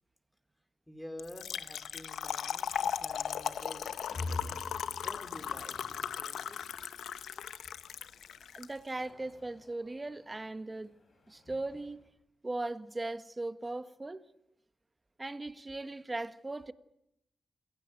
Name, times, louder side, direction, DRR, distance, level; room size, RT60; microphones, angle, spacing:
voice 1, 0.9-4.1 5.0-6.6, left 1 dB, 5° left, 4.6 m, -49 dB
Trickle dribble / Fill (with liquid), 1.2-8.7, left 9 dB, 85° left, 0.9 m, -37 dB
sound 1, 2.7-12.1, left 2 dB, 50° left, 7.0 m, -48 dB
voice 2, 8.5-10.9 11.3-12.0 12.4-14.2 15.2-16.7, right 2 dB, 25° right, 1.4 m, -38 dB
27.5 x 16.5 x 9.2 m
cardioid pair, 70°, 0 cm